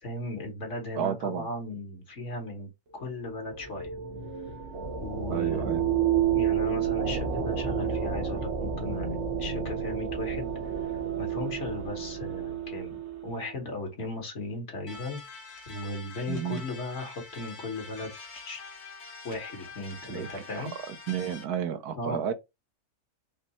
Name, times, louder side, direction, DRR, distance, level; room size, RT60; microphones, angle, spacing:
voice 1, 0.0-3.9 5.0-6.0 6.3-15.2 15.7-18.6 19.2-20.7 21.9-22.2, left 2 dB, 50° left, 1.8 m, -37 dB
voice 2, 1.0-1.5 5.3-5.8 16.3-16.6 20.1-22.3, right 9 dB, 85° right, 1.2 m, -32 dB
sound 1, 3.0-13.5, right 8 dB, 60° right, 1.2 m, -30 dB
sound 2, 14.9-21.4, left 4 dB, 85° left, 2.0 m, -45 dB
5.2 x 2.1 x 4.2 m
omnidirectional pair, 1.6 m